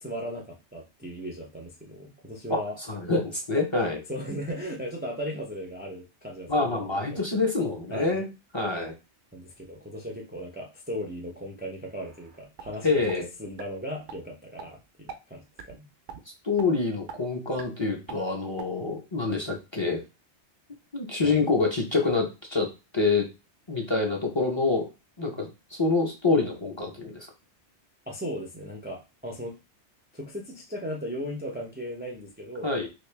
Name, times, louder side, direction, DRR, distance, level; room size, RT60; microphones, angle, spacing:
voice 1, 0.0-2.8 4.1-7.4 7.9-8.3 9.3-13.0 13.4-15.9 21.2-21.4 28.1-29.6 30.1-32.7, equal, 15° right, -1 dB, 0.4 m, -37 dB
voice 2, 2.9-4.0 6.5-8.3 8.5-8.9 12.8-13.3 16.4-20.0 20.9-22.7 22.9-23.3 23.7-24.9 25.2-27.3 32.6-32.9, left 3 dB, 30° left, 1 dB, 0.7 m, -26 dB
sound 1, 12.0-12.7 13.1-13.2 13.6-13.7 14.1-14.2 14.6-14.7 15.1-15.2 15.6-15.8 16.1-16.2 16.6-16.7 17.1-17.2 17.6-17.7 18.1-18.2 18.6-18.7, right 7 dB, 55° right, 0.6 m, -41 dB
3.1 x 2.8 x 3.3 m, 0.28 s
omnidirectional pair, 1.2 m